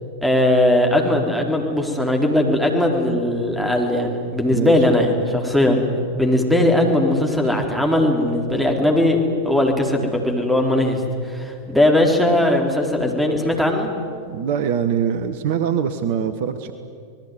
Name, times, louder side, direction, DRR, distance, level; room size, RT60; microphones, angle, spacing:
voice 1, 0.2-5.8 6.2-13.9, left 1 dB, 5° right, 2 dB, 4.1 m, -19 dB
voice 2, 14.3-16.7, right 8 dB, 50° right, 11 dB, 1.3 m, -23 dB
27.0 x 20.0 x 9.5 m, 2.3 s
figure-of-eight pair, 90°, 0 cm